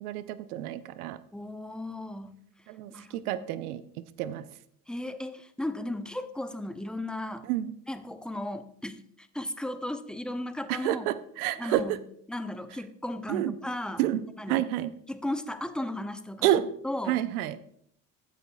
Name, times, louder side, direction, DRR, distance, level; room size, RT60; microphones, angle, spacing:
voice 1, 0.0-1.2 2.7-4.4 7.5-7.7 10.7-12.0 13.3-13.6 14.0-14.2 14.5-14.9 16.4-16.7 17.1-17.6, right 13 dB, 75° right, 15 dB, 0.7 m, -29 dB
voice 2, 1.3-2.4 2.9-3.5 4.9-7.5 7.9-11.1 11.6-12.0 12.3-14.0 14.4-14.7 15.1-16.5 16.8-17.2, left 1 dB, ahead, 10 dB, 0.5 m, -35 dB
14.0 x 8.1 x 2.3 m, 0.66 s
hypercardioid pair, 80°, 45 cm